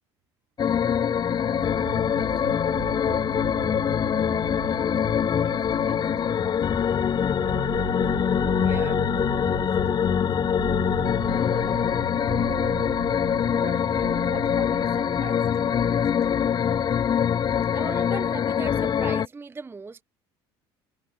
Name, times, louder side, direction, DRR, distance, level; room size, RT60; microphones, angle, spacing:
sound 1, 0.6-19.3, left 8 dB, 30° left, 0.6 m, -24 dB
sound 2, 1.0-18.2, right 11 dB, 85° right, 3.2 m, -39 dB
voice 1, 2.2-3.1 4.2-5.0 5.4-7.7 9.5-10.9 13.5-16.3, right 12 dB, 50° right, 3.9 m, -48 dB
voice 2, 8.6-9.0 17.7-20.0, right 4 dB, 15° right, 0.6 m, -38 dB
hypercardioid pair, 70°, 14 cm